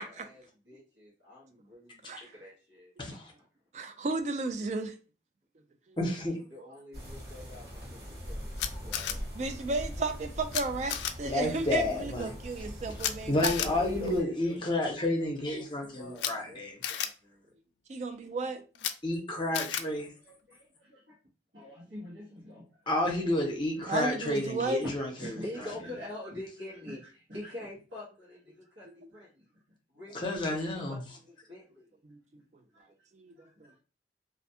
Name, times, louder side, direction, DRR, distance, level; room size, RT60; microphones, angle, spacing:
voice 1, 0.0-2.9 6.5-8.0 8.3-8.5 8.8-9.3 13.6-14.6 14.9-15.3 15.6-15.7 16.0-16.6 16.9-17.4 20.2-21.2 21.5-22.8 23.6-24.0 25.2-29.4 29.9-31.9 32.7-32.8 33.4-33.8, left 1 dB, 85° right, 1.0 m, -46 dB
voice 2, 3.7-4.9 9.3-13.5 14.0-14.2 17.9-18.6 23.9-24.8 28.9-29.1 32.0-32.2 33.2-33.5, right 3 dB, 40° right, 0.3 m, -33 dB
voice 3, 6.0-6.4 11.2-12.4 13.3-16.8 19.0-20.1 22.9-25.7 30.1-31.0, left 1 dB, 25° left, 0.6 m, -30 dB
sound 1, 6.9-14.2, equal, 60° right, 1.2 m, -42 dB
Camera, 8.6-9.1 10.5-10.6 10.9-11.1 13.0-13.1 13.4-13.7 16.2-16.3 16.8-17.1 18.8-18.9 19.5-19.8, left 10 dB, 75° left, 0.3 m, -31 dB
2.4 x 2.2 x 2.7 m
head